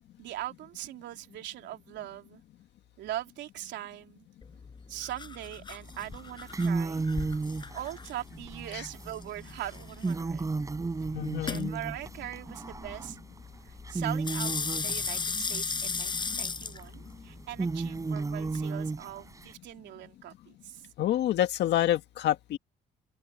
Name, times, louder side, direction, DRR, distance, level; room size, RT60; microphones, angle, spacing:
voice 1, 0.2-2.4 3.0-4.3 4.9-7.4 7.7-10.4 11.4-13.2 13.6-20.9, right 13 dB, 85° right, 3.3 m, -41 dB
sound 1, 4.4-18.6, left 5 dB, 25° left, 7.5 m, -38 dB
sound 2, 5.9-6.1 6.4-13.4 13.7-19.5, right 3 dB, 20° right, 7.7 m, -34 dB
voice 2, 11.1-11.7 21.0-22.6, left 12 dB, 75° left, 2.0 m, -27 dB
open air
cardioid pair, 150°, 18 cm